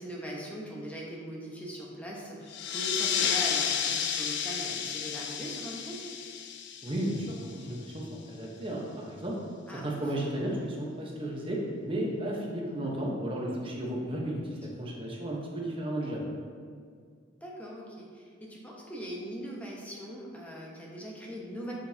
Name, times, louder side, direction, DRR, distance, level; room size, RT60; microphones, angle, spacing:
voice 1, 0.0-6.1 9.7-10.0 17.4-21.7, equal, 5° left, -4 dB, 1.0 m, -40 dB
sound 1, 2.5-7.7, left 8 dB, 60° left, 0.4 m, -32 dB
voice 2, 6.8-9.4 9.8-16.2, right 1 dB, 25° right, -3 dB, 1.1 m, -34 dB
7.0 x 6.1 x 2.8 m, 2.1 s
head